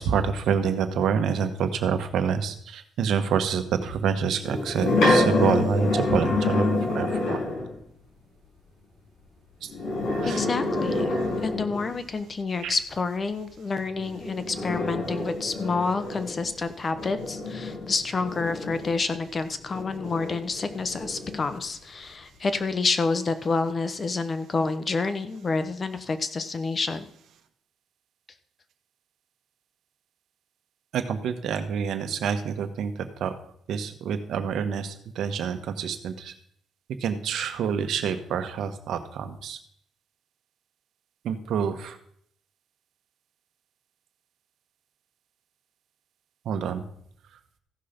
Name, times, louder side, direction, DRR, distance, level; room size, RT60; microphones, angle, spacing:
voice 1, 0.0-7.4 9.6-9.7 10.2-10.4 12.6-12.7 30.9-33.3 33.7-36.3 37.0-39.6 41.2-42.0 46.4-46.8, right 7 dB, 75° right, 8 dB, 1.2 m, -27 dB
sound 1, 4.4-7.7 9.7-12.0 14.0-19.2 19.7-21.5, left 2 dB, 85° left, 4.5 m, -27 dB
voice 2, 10.2-11.1 11.4-27.0, left 4 dB, 35° left, 10 dB, 1.0 m, -28 dB
15.0 x 5.7 x 5.2 m, 0.68 s
cardioid pair, 110°, 0 cm